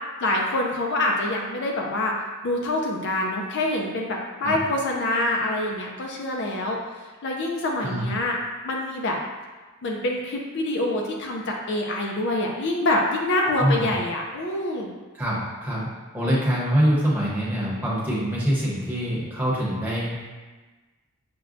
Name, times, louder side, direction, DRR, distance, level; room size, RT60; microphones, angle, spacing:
voice 1, 0.2-2.1 2.4-6.8 7.2-8.4 8.6-9.2 9.8-14.9, left 1 dB, 50° left, 0 dB, 0.4 m, -26 dB
voice 2, 15.2-15.9 16.1-20.1, equal, 10° right, -7 dB, 0.8 m, -24 dB
6.0 x 2.1 x 2.5 m, 1.3 s
head